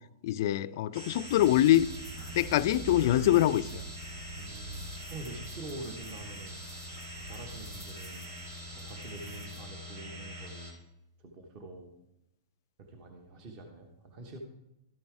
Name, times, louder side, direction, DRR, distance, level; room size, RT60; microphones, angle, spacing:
voice 1, 0.2-1.9 2.3-3.8, left 13 dB, 50° left, 0.3 m, -24 dB
sound 1, 0.9-10.7, equal, 80° right, 2.3 m, -44 dB
sound 2, 1.3-9.6, right 3 dB, 15° right, 2.1 m, -46 dB
voice 2, 4.3-4.8 5.1-6.6 7.2-8.3 8.8-10.7 11.2-12.0 12.8-14.4, right 2 dB, 35° right, 1.0 m, -45 dB
12.5 x 5.3 x 4.6 m
hypercardioid pair, 155°, 2 cm